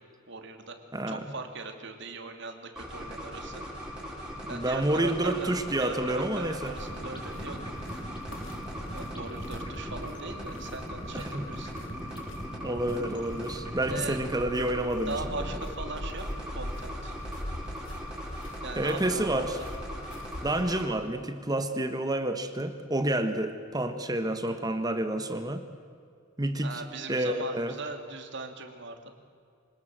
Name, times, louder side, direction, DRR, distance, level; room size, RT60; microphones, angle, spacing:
voice 1, 0.3-0.8 1.0-3.6 4.5-7.6 8.0-8.1 8.9-11.7 13.9-14.2 15.1-17.2 18.6-19.5 26.6-29.1, right 3 dB, 60° right, 6 dB, 2.7 m, -39 dB
sound 1, 2.8-20.9, equal, 5° right, 5.8 m, -40 dB
voice 2, 4.5-6.7 11.1-11.4 12.6-15.1 18.8-19.6 20.4-25.6 26.4-26.8 27.1-27.7, right 1 dB, 20° right, 8 dB, 1.4 m, -29 dB
sound 2, 6.5-20.5, left 1 dB, 70° left, 2.7 m, -43 dB
sound 3, 6.8-14.3, equal, 25° left, 6.6 m, -42 dB
26.0 x 19.5 x 7.7 m, 2.3 s
head